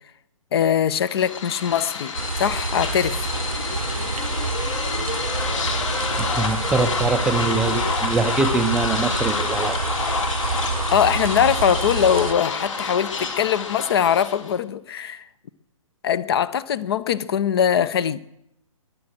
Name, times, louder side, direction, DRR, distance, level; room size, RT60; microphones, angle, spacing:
voice 1, 0.5-3.3 4.0-4.2 10.9-15.3 16.0-18.2, left 9 dB, 45° left, 0.8 m, -22 dB
sound 1, 1.0-14.6, left 4 dB, 65° left, 3.3 m, -28 dB
sound 2, 2.1-12.3, right 4 dB, 85° right, 0.9 m, -28 dB
voice 2, 6.2-9.8, right 3 dB, 5° right, 0.5 m, -23 dB
22.0 x 7.7 x 7.6 m
figure-of-eight pair, 135°, 18 cm